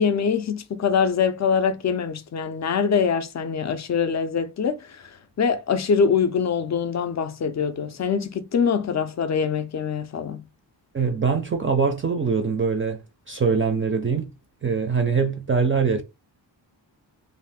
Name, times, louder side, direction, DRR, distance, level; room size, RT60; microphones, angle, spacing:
voice 1, 0.0-10.4, left 6 dB, 40° left, 0.4 m, -24 dB
voice 2, 10.9-13.0 13.3-14.3 14.6-16.0, right 5 dB, 30° right, 0.4 m, -23 dB
2.6 x 2.4 x 3.4 m
wide cardioid pair, 135°, 44 cm